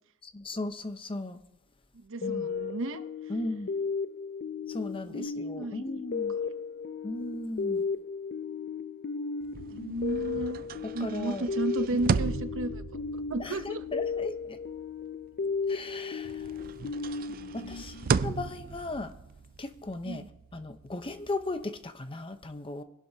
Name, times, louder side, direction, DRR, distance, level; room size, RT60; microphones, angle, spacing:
voice 1, 0.2-1.4 2.2-2.5 3.3-3.7 4.7-6.4 7.0-7.8 11.0-11.5 11.9-12.2 13.4-14.6 15.7-16.5 17.5-19.1 19.6-20.2 20.5-22.8, left 2 dB, 25° left, 8 dB, 0.8 m, -37 dB
voice 2, 2.0-3.0 5.1-5.8 9.7-10.7 10.9-12.8 13.3-13.8 17.3-17.8 20.0-20.3, right 2 dB, 65° right, 10 dB, 0.8 m, -34 dB
sound 1, 2.2-18.6, left 5 dB, 45° left, 0.4 m, -35 dB
sound 2, 9.4-15.9 16.2-21.6, right 5 dB, 40° right, 0.4 m, -36 dB
23.5 x 11.5 x 2.8 m, 0.80 s
head